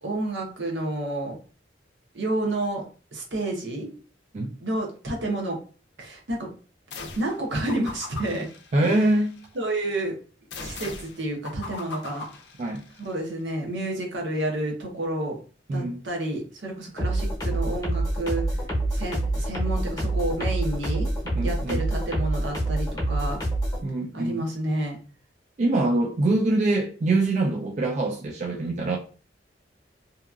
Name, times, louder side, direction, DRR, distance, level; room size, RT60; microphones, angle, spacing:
voice 1, 0.0-1.4 2.1-2.8 3.1-3.9 4.6-5.6 6.0-6.5 7.2-8.5 8.8-9.0 9.6-10.2 10.6-12.2 13.0-15.4 15.7-18.4 18.9-21.1 21.4-23.4 24.1-25.0, right 1 dB, 75° right, 0.8 m, -30 dB
sound 1, 6.9-7.4 7.7-9.4 10.5-13.1, left 4 dB, 70° left, 0.5 m, -40 dB
voice 2, 8.7-9.4 12.6-12.9 15.7-16.0 21.3-21.8 23.8-24.4 25.6-29.0, right 2 dB, 40° right, 0.3 m, -24 dB
sound 2, 17.0-23.8, right 1 dB, 20° left, 0.8 m, -26 dB
2.8 x 2.3 x 2.3 m
head